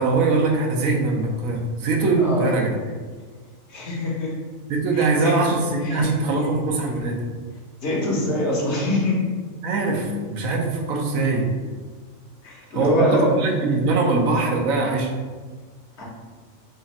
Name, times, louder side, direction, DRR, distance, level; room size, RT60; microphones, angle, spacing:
voice 1, 0.0-2.8 4.7-7.2 9.6-11.5 12.7-15.1, right 3 dB, 80° right, 1 dB, 1.0 m, -22 dB
voice 2, 2.2-2.5 3.7-4.3 4.9-5.4 5.8-6.5 7.8-9.2 12.4-13.3 16.0-16.1, left 1 dB, 60° left, -3 dB, 1.1 m, -25 dB
3.3 x 2.4 x 4.0 m, 1.5 s
omnidirectional pair, 1.4 m